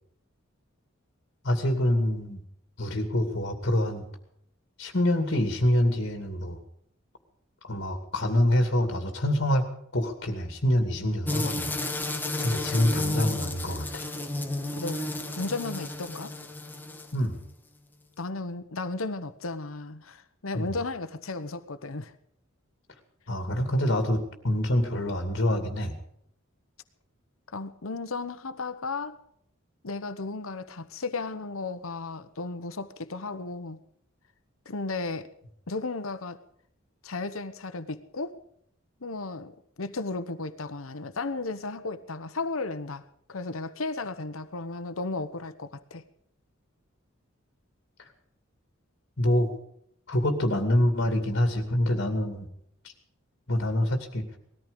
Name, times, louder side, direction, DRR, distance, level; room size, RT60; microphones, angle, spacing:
voice 1, 1.4-2.4 2.8-4.1 4.8-6.6 7.6-9.6 9.9-11.7 12.4-14.1 17.1-17.4 20.5-20.7 23.3-26.0 49.2-49.5 50.1-52.5 53.5-54.2, left 1 dB, 55° left, 6 dB, 2.5 m, -26 dB
sound 1, 11.2-17.3, left 2 dB, 10° left, 1.5 m, -32 dB
voice 2, 14.7-15.0 15.4-16.3 18.2-22.1 27.5-29.2 29.8-33.8 34.6-35.3 35.7-36.4 37.0-38.4 39.0-43.0 43.3-46.0, left 3 dB, 85° left, 11 dB, 1.1 m, -34 dB
19.5 x 14.0 x 5.2 m, 0.69 s
head